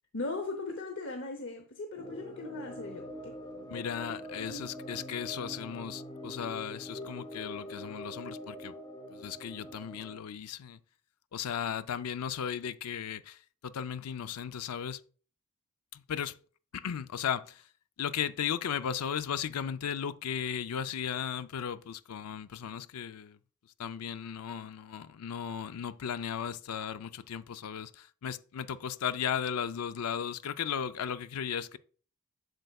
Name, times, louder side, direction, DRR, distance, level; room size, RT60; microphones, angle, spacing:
voice 1, 0.1-3.4 4.4-4.7, left 3 dB, 55° left, 0.8 m, -39 dB
sound 1, 2.0-10.2, equal, 20° left, 0.7 m, -44 dB
voice 2, 3.7-8.7 9.1-10.8 11.3-15.0 15.9-16.4 16.7-17.6 18.0-23.4 23.8-31.8, left 8 dB, 90° left, 0.4 m, -36 dB
7.7 x 6.6 x 2.3 m
head